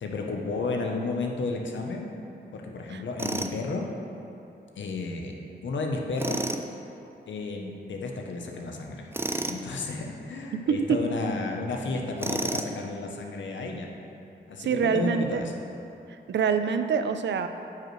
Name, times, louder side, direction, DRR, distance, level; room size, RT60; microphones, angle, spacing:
voice 1, 0.0-2.1 2.5-3.8 4.8-6.5 7.3-9.1 9.5-13.9 14.5-15.5, left 3 dB, 80° left, 1 dB, 0.8 m, -32 dB
Tools, 3.2-3.6 6.2-6.6 9.1-9.6 12.2-12.8, right 2 dB, 10° right, 0.4 m, -30 dB
voice 2, 10.5-11.0 14.6-15.4 16.3-17.5, right 6 dB, 70° right, 8 dB, 0.4 m, -25 dB
9.2 x 5.2 x 3.1 m, 2.8 s
cardioid pair, 65°, 19 cm